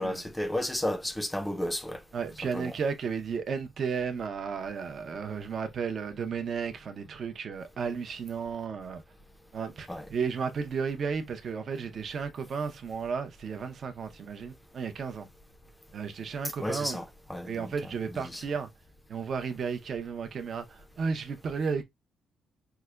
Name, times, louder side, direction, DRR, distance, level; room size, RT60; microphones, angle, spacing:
voice 1, 0.0-2.0 2.5-2.7 9.9-10.1 16.6-17.7 18.1-18.4, left 1 dB, 10° left, 0.5 m, -33 dB
voice 2, 2.1-9.0 9.5-15.3 15.9-17.0 17.5-18.7 19.1-21.8, right 5 dB, 55° right, 0.5 m, -33 dB
4.6 x 2.1 x 2.2 m
cardioid pair, 90°, 0 cm